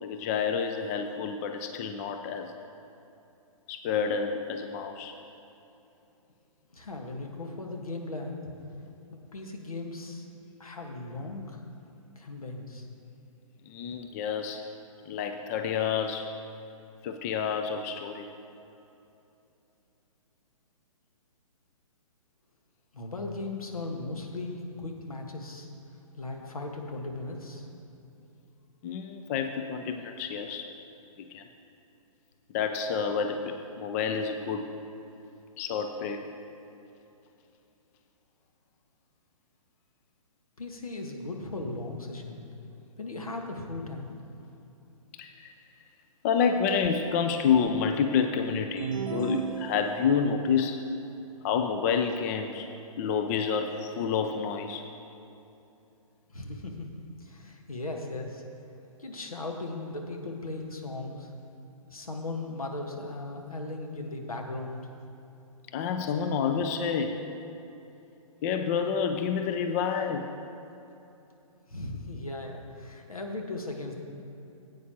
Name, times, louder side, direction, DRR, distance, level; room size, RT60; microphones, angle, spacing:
voice 1, 0.0-2.5 3.7-5.1 13.7-14.6 15.1-16.3 17.0-18.3 28.8-30.7 31.2-31.4 32.5-34.7 35.6-36.2 45.2-45.5 46.2-50.9 51.4-52.7 53.0-54.8 65.7-67.2 68.4-70.3, left 6 dB, 25° left, 6 dB, 0.5 m, -29 dB
voice 2, 6.7-8.4 9.1-10.3 10.6-11.6 12.1-12.9 22.9-25.7 26.1-27.7 40.6-42.5 43.0-44.1 56.3-56.9 57.2-58.4 59.0-61.3 61.9-64.9 71.7-73.9, left 2 dB, 80° left, 2 dB, 1.6 m, -37 dB
sound 1, 48.8-50.4, right 5 dB, 65° right, 0.7 m, -34 dB
15.0 x 8.8 x 2.9 m, 2.9 s
figure-of-eight pair, 130°, 18 cm